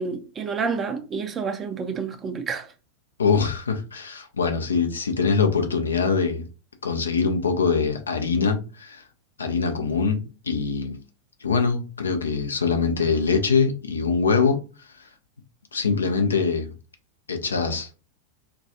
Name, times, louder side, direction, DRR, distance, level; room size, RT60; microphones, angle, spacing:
voice 1, 0.0-2.7, right 5 dB, 25° right, 0.5 m, -29 dB
voice 2, 3.2-6.4 6.8-9.0 9.4-11.0 11.4-14.6 15.7-16.7 17.3-17.9, left 5 dB, 70° left, 0.5 m, -23 dB
2.3 x 2.2 x 2.7 m
figure-of-eight pair, 90°, 0 cm